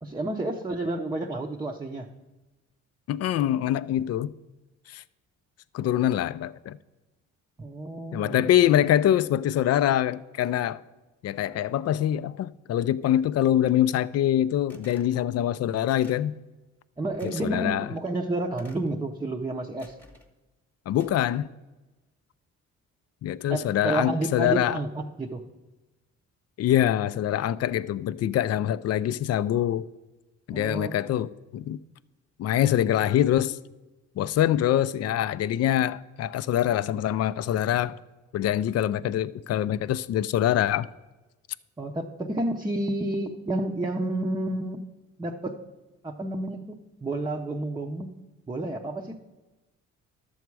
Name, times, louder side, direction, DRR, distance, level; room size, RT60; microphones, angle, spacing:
voice 1, 0.0-2.1 7.6-8.5 17.0-20.0 23.5-25.4 30.5-31.0 41.8-44.8 45.2-45.6 46.0-48.1 48.5-49.2, right 1 dB, 15° right, 0.6 m, -30 dB
voice 2, 3.1-4.3 4.9-5.0 5.7-6.8 8.1-10.8 11.2-16.4 17.2-17.9 20.9-21.5 23.2-24.8 26.6-29.8 30.5-31.8 32.4-33.6 34.2-38.0 38.3-40.9, left 11 dB, 55° left, 0.4 m, -24 dB
sound 1, 14.7-15.1 15.9-16.3 17.2-17.5 18.6-19.0 19.8-20.3 21.0-21.4, left 1 dB, 5° left, 1.1 m, -53 dB
11.5 x 7.2 x 4.6 m
cardioid pair, 90°, 30 cm